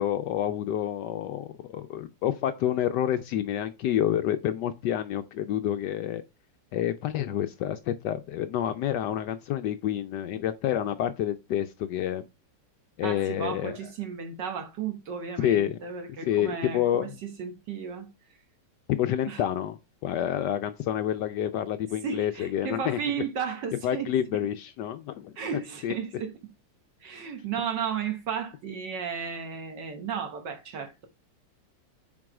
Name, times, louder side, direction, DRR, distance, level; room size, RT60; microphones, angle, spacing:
voice 1, 0.0-6.2 6.7-12.2 13.0-13.8 15.4-15.8 16.2-17.2 18.9-19.8 20.0-23.0 23.8-26.0, left 11 dB, 80° left, 0.9 m, -28 dB
voice 2, 13.0-18.1 19.3-19.4 22.0-24.1 25.4-26.3 27.0-31.1, right 7 dB, 60° right, 1.5 m, -34 dB
6.1 x 4.7 x 4.8 m
omnidirectional pair, 2.4 m